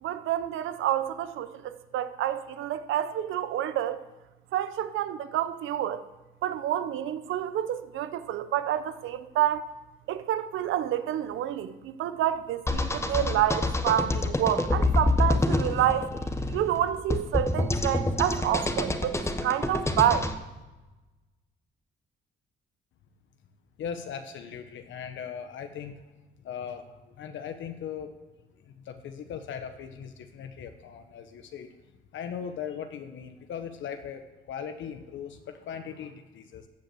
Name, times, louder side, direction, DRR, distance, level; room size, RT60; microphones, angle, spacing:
voice 1, 0.0-4.0 4.5-6.0 6.4-9.7 10.1-16.1 16.5-19.2 19.4-20.3, right 11 dB, 85° right, 0.7 m, -28 dB
sound 1, 12.7-20.3, left 2 dB, 15° left, 1.0 m, -27 dB
voice 2, 23.8-26.0 26.4-28.2 28.6-31.7 32.1-36.7, left 7 dB, 70° left, 0.9 m, -39 dB
14.5 x 5.2 x 7.7 m
cardioid pair, 90°, 20 cm